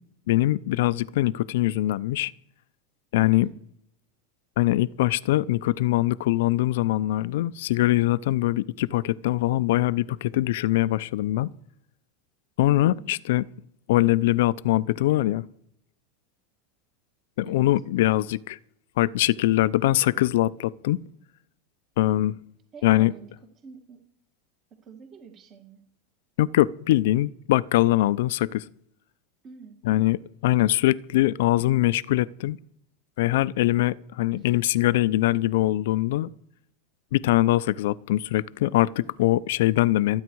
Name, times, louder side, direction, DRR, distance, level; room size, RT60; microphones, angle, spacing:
voice 1, 0.3-2.3 3.1-3.5 4.6-11.5 12.6-13.5 13.9-15.4 17.4-18.6 19.0-21.0 22.0-22.4 22.8-23.1 26.4-28.6 29.8-32.6 33.2-36.3 37.1-40.2, left 16 dB, 75° left, 0.6 m, -22 dB
voice 2, 22.7-24.0 24.7-25.8 29.4-29.8 34.4-34.5, right 5 dB, 30° right, 1.9 m, -47 dB
28.0 x 9.5 x 4.7 m
supercardioid pair, 145°, 0 cm